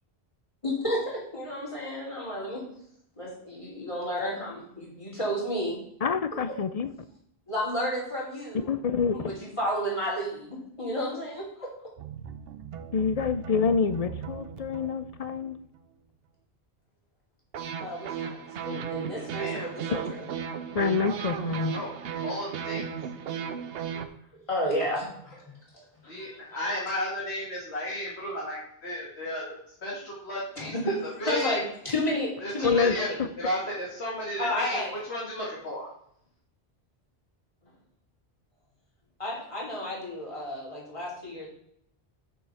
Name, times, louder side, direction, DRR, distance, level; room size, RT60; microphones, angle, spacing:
voice 1, 0.6-2.7 3.2-5.8 6.5-6.6 7.5-8.7 9.0-11.7 17.8-20.2 23.3-23.4 23.9-25.8 30.6-33.3 34.4-34.9 39.2-41.5, equal, 30° left, -5 dB, 2.9 m, -32 dB
voice 2, 6.0-6.9 8.5-9.3 12.9-15.6 20.7-21.7 32.6-33.3, left 5 dB, 50° left, 11 dB, 0.5 m, -27 dB
sound 1, 12.0-15.8 17.5-24.1, right 8 dB, 70° right, 0.9 m, -36 dB
voice 3, 19.2-19.7 21.7-21.9 22.2-22.9 26.0-29.4 29.8-31.6 32.4-33.1 33.4-35.9, left 1 dB, 90° left, -6 dB, 2.2 m, -33 dB
6.8 x 5.5 x 5.7 m, 0.69 s
omnidirectional pair, 1.1 m